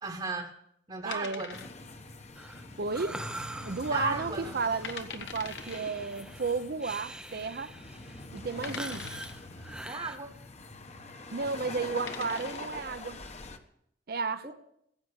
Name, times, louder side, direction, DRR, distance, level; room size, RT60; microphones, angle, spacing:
voice 1, 0.0-0.6 0.9-1.6 3.9-4.5 9.8-10.3 14.4-14.5, right 4 dB, 30° right, 1.2 m, -36 dB
voice 2, 1.0-1.4 2.8-3.2 3.6-7.7 8.3-9.1 11.3-13.2 14.1-14.5, right 4 dB, 60° right, 0.7 m, -33 dB
sound 1, 1.1-2.1 2.3-2.4 3.0-3.5 3.8-3.9 4.5-4.6 4.8-5.8 6.9-7.0 7.7-7.8 8.6-9.5 11.3-11.5 11.9-12.7, left 6 dB, 85° left, 1.3 m, -43 dB
sound 2, 1.5-13.6, left 2 dB, 40° left, 1.1 m, -44 dB
Breathing, 2.4-10.2, right 1 dB, 5° right, 0.5 m, -44 dB
15.5 x 7.7 x 8.1 m
head